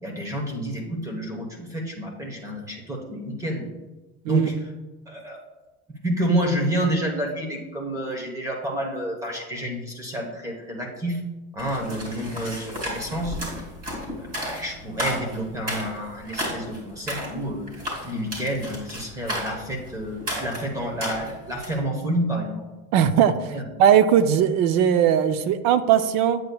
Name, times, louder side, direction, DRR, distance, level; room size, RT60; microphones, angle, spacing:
voice 1, 0.0-3.7 4.3-4.7 5.1-5.4 6.0-11.2 11.5-13.4 14.2-22.6 23.5-23.6, right 1 dB, 10° right, 1 dB, 0.9 m, -29 dB
sound 1, 11.6-21.8, equal, 25° right, 2.4 m, -33 dB
voice 2, 22.9-23.5 23.8-26.4, right 9 dB, 55° right, 11 dB, 0.5 m, -19 dB
8.6 x 8.0 x 2.3 m, 1.1 s
cardioid pair, 155°, 34 cm